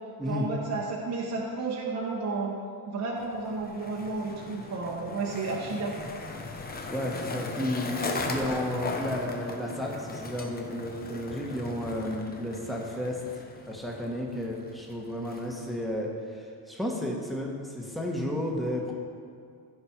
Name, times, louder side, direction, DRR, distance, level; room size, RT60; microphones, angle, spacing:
voice 1, 0.2-2.6 2.9-5.9, right 3 dB, 45° right, -3 dB, 1.3 m, -32 dB
Skateboard, 3.2-15.9, left 3 dB, 25° left, 1.0 m, -38 dB
voice 2, 6.9-13.2 13.6-18.9, left 1 dB, ahead, -2 dB, 1.6 m, -32 dB
15.5 x 5.2 x 4.7 m, 2.3 s
cardioid pair, 125°, 40 cm